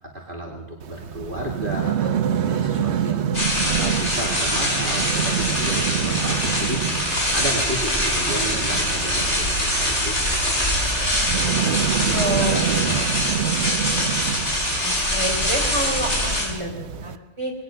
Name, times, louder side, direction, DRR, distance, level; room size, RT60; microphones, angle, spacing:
voice 1, 0.0-3.4 3.7-7.0 7.3-10.2 10.9-11.8 12.1-13.2, right 1 dB, 50° right, -1 dB, 3.0 m, -32 dB
sound 1, 0.8-17.2, right 9 dB, 70° right, 1.1 m, -27 dB
sound 2, 3.3-16.5, left 1 dB, 80° left, 5.8 m, -23 dB
voice 2, 12.1-12.8 14.8-17.5, right 1 dB, 25° right, 1 dB, 3.9 m, -28 dB
21.0 x 18.5 x 6.7 m, 0.99 s
omnidirectional pair, 1.2 m